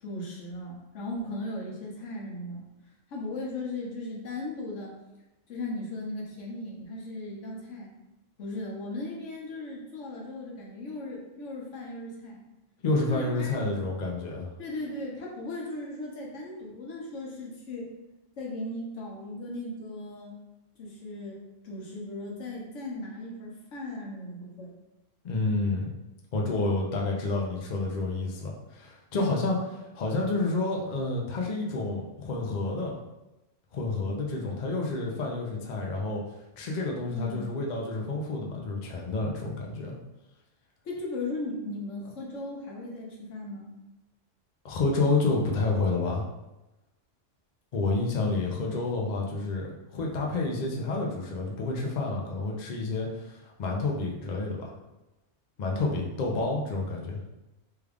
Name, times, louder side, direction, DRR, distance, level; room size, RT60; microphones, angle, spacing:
voice 1, 0.0-2.6 3.1-4.9 5.5-7.9 8.4-12.4 13.1-13.5 14.6-17.9 18.4-20.4 20.8-21.4 21.6-24.7 37.1-37.6 40.8-43.7, left 2 dB, 80° left, -2 dB, 1.1 m, -37 dB
voice 2, 12.8-14.5 25.2-25.9 26.3-32.9 33.7-36.2 36.6-40.0 44.6-46.2 47.7-54.7 55.6-57.2, left 3 dB, 50° left, -2 dB, 0.6 m, -29 dB
3.4 x 2.3 x 3.4 m, 0.99 s
omnidirectional pair, 1.3 m